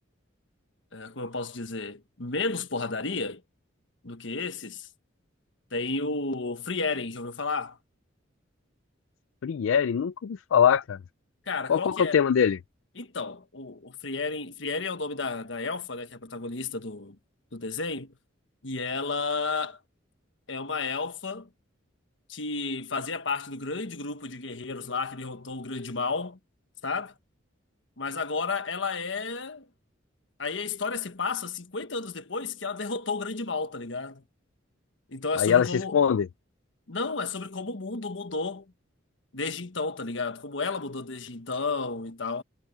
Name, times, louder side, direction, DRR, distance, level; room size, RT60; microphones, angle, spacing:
voice 1, 0.9-3.4 4.0-4.9 5.7-7.8 11.5-12.2 13.0-17.2 17.5-18.1 18.6-19.8 20.5-21.5 22.3-26.4 26.8-27.1 28.0-29.7 30.4-34.2 35.1-36.0 36.9-38.6 39.3-42.4, left 4 dB, 70° left, 1.4 m, -32 dB
voice 2, 9.4-11.0 11.7-12.6 35.4-36.3, left 7 dB, 85° left, 0.4 m, -23 dB
head